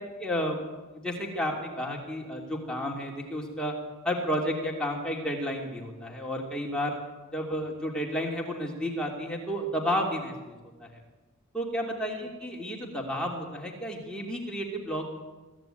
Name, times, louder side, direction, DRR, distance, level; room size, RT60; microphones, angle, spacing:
voice 1, 0.2-0.6 0.9-3.7 4.0-7.0 7.3-10.9 11.5-15.2, equal, 5° left, -2 dB, 3.0 m, -32 dB
23.5 x 14.5 x 9.2 m, 1.2 s
head